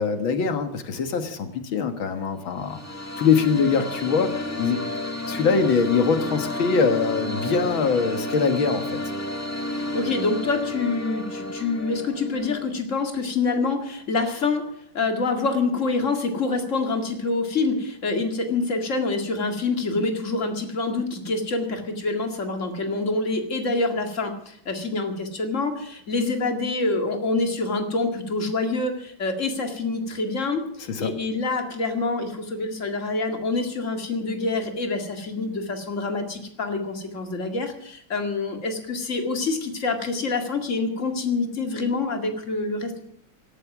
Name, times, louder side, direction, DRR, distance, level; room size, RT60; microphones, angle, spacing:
voice 1, 0.0-2.8 3.2-4.9 5.3-9.0 30.9-31.1, left 5 dB, 75° left, 8 dB, 2.3 m, -23 dB
sound 1, 2.4-12.7, left 1 dB, 10° left, 1.3 m, -31 dB
voice 2, 9.7-14.6 14.9-43.0, left 3 dB, 40° left, 4 dB, 2.4 m, -26 dB
17.0 x 13.0 x 6.1 m, 0.68 s
omnidirectional pair, 2.2 m